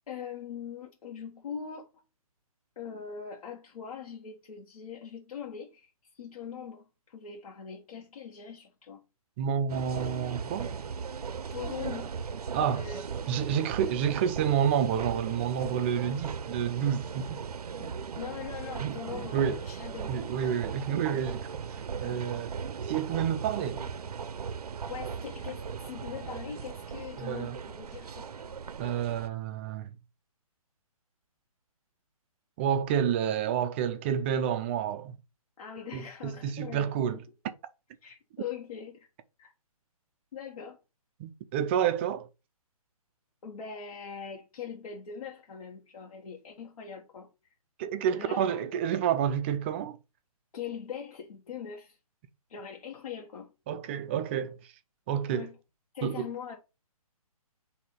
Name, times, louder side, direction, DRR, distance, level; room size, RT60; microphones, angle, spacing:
voice 1, 0.1-1.9 2.7-9.0 11.5-12.1 12.7-13.6 17.8-20.1 20.4-21.2 22.0-22.4 23.8-23.9 24.9-28.6 35.6-37.2 38.0-39.1 39.4-39.5 40.3-40.8 43.4-47.3 48.1-48.6 50.5-52.0 52.5-53.5 55.3-55.6 55.9-56.6, left 7 dB, 65° left, 1.6 m, -42 dB
voice 2, 9.4-10.7 12.5-12.9 13.3-17.4 18.8-19.6 20.1-21.5 22.0-22.5 22.9-23.8 27.2-27.6 28.8-29.9 32.6-35.2 35.9-37.2 41.2-42.3 47.8-50.0 53.7-54.6 55.1-55.5 56.0-56.3, right 8 dB, 20° right, 0.4 m, -29 dB
sound 1, 9.7-29.3, right 6 dB, 85° right, 0.6 m, -38 dB
6.3 x 2.7 x 5.5 m
hypercardioid pair, 150°, 19 cm